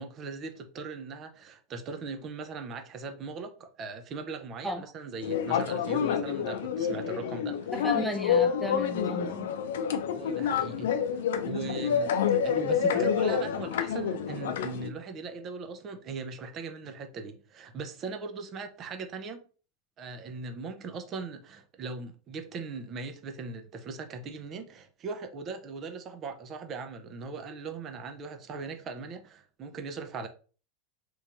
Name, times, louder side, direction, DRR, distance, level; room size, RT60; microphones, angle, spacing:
voice 1, 0.0-7.7 10.1-10.9 11.4-19.4 20.0-30.3, right 4 dB, 35° right, 0.7 m, -39 dB
sound 1, 5.2-14.9, left 7 dB, 85° left, 0.5 m, -28 dB
voice 2, 7.7-9.5, equal, ahead, 0.4 m, -34 dB
3.1 x 2.6 x 3.5 m
supercardioid pair, 125°, 0 cm